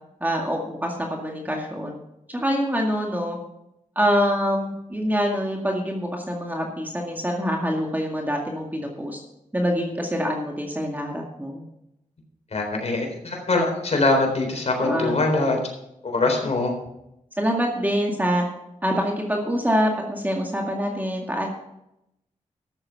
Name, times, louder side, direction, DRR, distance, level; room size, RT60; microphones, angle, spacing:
voice 1, 0.2-1.9 2.3-3.4 4.0-9.2 9.5-11.6 14.8-15.2 17.4-18.4 18.8-21.5, equal, 15° right, 0 dB, 2.1 m, -25 dB
voice 2, 12.5-15.6 16.0-16.7, left 2 dB, 55° left, 2 dB, 4.0 m, -23 dB
13.5 x 7.6 x 5.7 m, 0.85 s
cardioid pair, 60°, 14 cm